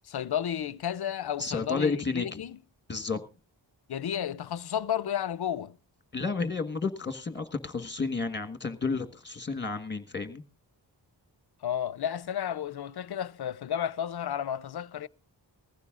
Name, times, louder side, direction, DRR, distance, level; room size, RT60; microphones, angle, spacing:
voice 1, 0.1-2.6 3.9-5.8 11.6-15.1, left 9 dB, 60° left, 0.5 m, -32 dB
voice 2, 1.4-2.4 2.9-3.2 6.1-10.4, left 4 dB, 25° left, 1.4 m, -31 dB
19.5 x 15.0 x 2.4 m
wide cardioid pair, 75°, 44 cm